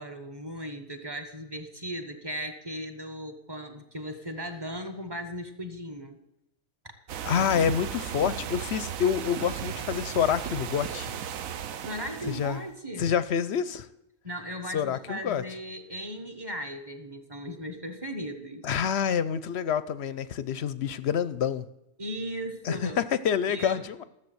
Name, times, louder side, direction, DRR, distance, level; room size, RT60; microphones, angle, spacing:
voice 1, 0.0-6.2 6.8-6.9 11.8-13.1 14.2-18.7 22.0-23.0 23.5-23.8, equal, 20° right, 5 dB, 1.2 m, -37 dB
sound 1, 7.1-12.6, right 9 dB, 75° right, 1.1 m, -36 dB
voice 2, 7.2-11.1 12.3-12.6 13.0-13.9 14.7-15.4 18.6-21.6 22.6-24.0, left 8 dB, 60° left, 15 dB, 0.7 m, -27 dB
14.0 x 7.3 x 7.9 m, 0.88 s
omnidirectional pair, 1.5 m